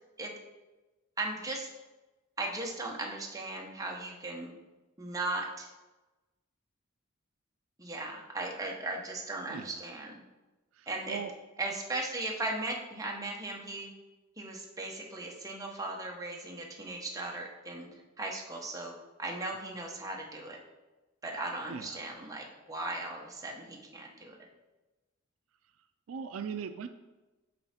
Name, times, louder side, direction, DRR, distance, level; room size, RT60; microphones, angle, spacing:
voice 1, 1.2-1.7 2.4-4.6 5.0-5.7 7.8-10.1 10.9-11.2 11.6-13.9 14.4-17.9 18.2-18.9 19.2-20.6 21.2-24.4, right 2 dB, 15° right, 0 dB, 1.0 m, -37 dB
voice 2, 9.5-9.8 10.8-11.3 21.7-22.0 26.1-26.9, right 6 dB, 70° right, 8 dB, 0.4 m, -39 dB
7.6 x 4.8 x 4.3 m, 1.1 s
head